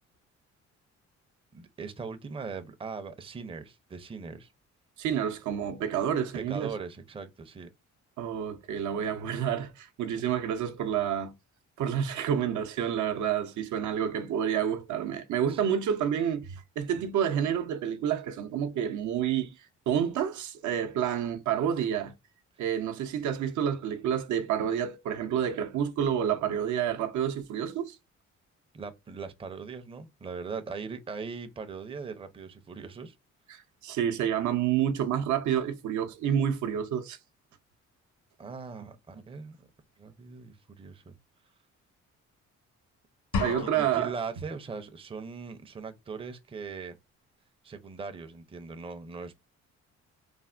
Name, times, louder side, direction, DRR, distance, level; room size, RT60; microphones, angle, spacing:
voice 1, 1.5-4.5 6.3-7.7 15.5-15.6 28.7-33.1 38.4-39.7 40.0-41.2 43.4-47.0 47.6-49.3, right 5 dB, 20° right, 0.5 m, -40 dB
voice 2, 5.0-6.7 8.2-11.3 11.8-19.5 19.9-22.1 22.6-28.0 33.5-37.2 43.4-44.1, right 9 dB, 75° right, 0.6 m, -29 dB
sound 1, 43.3-44.3, left 4 dB, 75° left, 0.8 m, -32 dB
3.3 x 2.0 x 2.3 m
cardioid pair, 90°, 30 cm